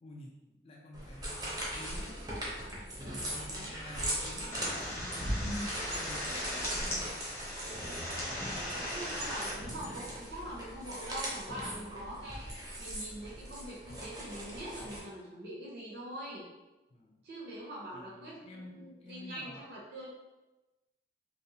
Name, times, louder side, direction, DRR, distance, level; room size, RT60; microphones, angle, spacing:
voice 1, 0.0-2.2 3.1-7.2 9.6-10.0 16.9-17.2 17.9-19.7, left 1 dB, 35° left, -2 dB, 0.3 m, -51 dB
sound 1, 0.9-15.0, right 1 dB, 20° right, 0.5 m, -40 dB
voice 2, 3.4-3.7 8.7-12.5 12.8-16.4 17.2-20.1, right 1 dB, 65° right, -5 dB, 0.5 m, -44 dB
sound 2, 4.5-9.5, left 1 dB, 15° left, 0.7 m, -37 dB
2.7 x 2.0 x 2.7 m, 1.1 s
head